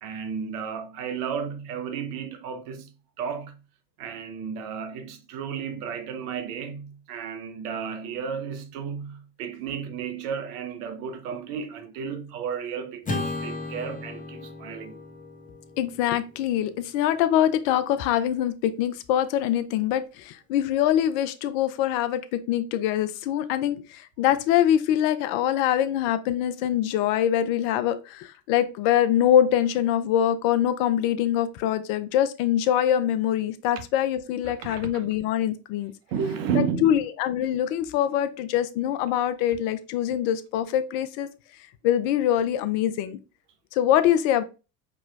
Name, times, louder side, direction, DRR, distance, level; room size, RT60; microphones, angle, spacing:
voice 1, 0.0-3.6 4.0-15.0 34.6-35.0 36.1-37.0, right 7 dB, 65° right, 0.9 m, -33 dB
Acoustic guitar / Strum, 13.0-17.5, left 2 dB, 15° left, 0.9 m, -36 dB
voice 2, 15.8-22.2 22.5-35.9 36.6-41.3 41.8-43.2 43.7-44.4, left 11 dB, 55° left, 0.6 m, -24 dB
4.9 x 2.9 x 2.3 m
hypercardioid pair, 75°, 50 cm